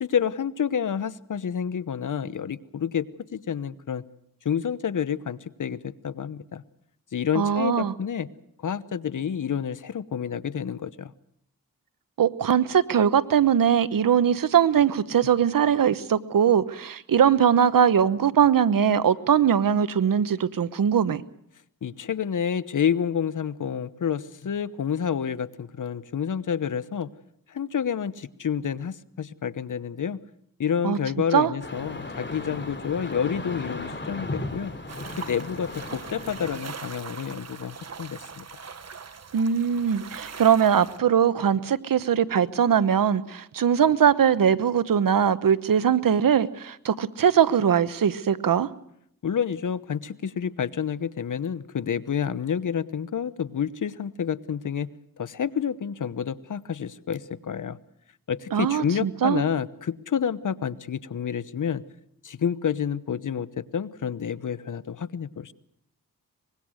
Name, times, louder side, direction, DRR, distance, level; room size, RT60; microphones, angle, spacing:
voice 1, 0.0-4.0 4.4-6.6 7.1-8.3 8.6-11.1 21.8-27.1 27.5-30.2 30.6-34.7 35.2-38.6 49.2-54.9 55.2-57.8 58.3-61.8 62.2-65.5, left 7 dB, 60° left, 16 dB, 1.0 m, -29 dB
voice 2, 7.3-7.9 12.2-21.2 30.8-31.0 31.3-31.5 39.3-48.7 58.5-59.4, right 8 dB, 70° right, 15 dB, 1.0 m, -21 dB
sound 1, 31.6-36.6, left 2 dB, 30° left, 3.1 m, -36 dB
sound 2, 34.9-41.0, right 5 dB, 45° right, 1.3 m, -41 dB
24.5 x 21.0 x 6.4 m, 0.72 s
cardioid pair, 65°, 34 cm